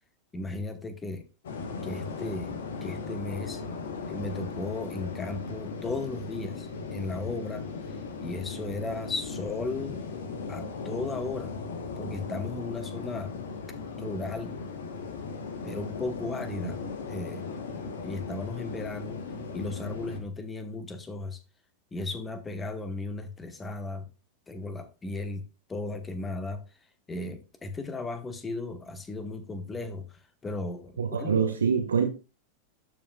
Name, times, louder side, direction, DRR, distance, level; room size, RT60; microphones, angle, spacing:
voice 1, 0.3-1.3 1.8-3.6 4.1-10.0 10.5-11.6 12.0-13.3 14.0-14.5 15.6-16.8 17.1-17.5 17.8-19.2 19.5-21.4 21.9-24.1 24.5-26.6 27.1-30.9 31.2-31.4, left 3 dB, 15° left, 1.0 m, -35 dB
sound 1, 1.4-20.2, left 4 dB, 60° left, 1.2 m, -37 dB
voice 2, 31.0-32.1, right 6 dB, 70° right, 1.0 m, -25 dB
12.0 x 4.9 x 2.3 m
figure-of-eight pair, 90°, 0 cm